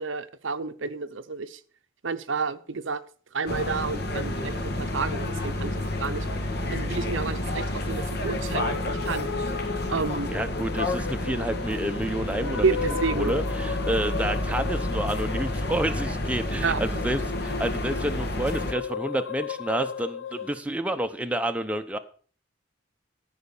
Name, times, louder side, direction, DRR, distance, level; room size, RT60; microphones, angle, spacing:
voice 1, 0.0-1.6 2.0-3.0 3.3-5.7 6.0-6.3 6.7-9.5 9.9-10.3 12.6-13.3 16.6-16.8, right 4 dB, 75° right, 11 dB, 0.8 m, -30 dB
sound 1, 3.5-18.7, left 1 dB, 55° left, 1.6 m, -30 dB
sound 2, 8.5-20.6, left 5 dB, 75° left, 0.7 m, -36 dB
voice 2, 10.3-12.8 13.1-22.0, right 1 dB, 5° right, 6 dB, 0.8 m, -29 dB
14.0 x 5.8 x 7.1 m, 0.43 s
head